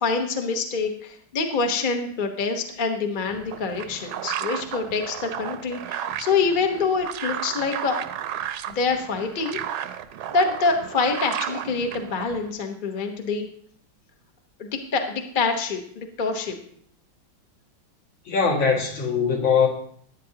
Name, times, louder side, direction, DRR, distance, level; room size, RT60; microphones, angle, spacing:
voice 1, 0.0-8.0 8.7-9.6 10.3-13.5 14.6-16.6, left 4 dB, 35° left, 4 dB, 0.8 m, -26 dB
sound 1, 3.3-12.5, right 10 dB, 75° right, 1.4 m, -33 dB
voice 2, 18.3-19.7, left 6 dB, 65° left, -2 dB, 2.8 m, -21 dB
13.5 x 10.0 x 2.8 m, 0.63 s
omnidirectional pair, 2.3 m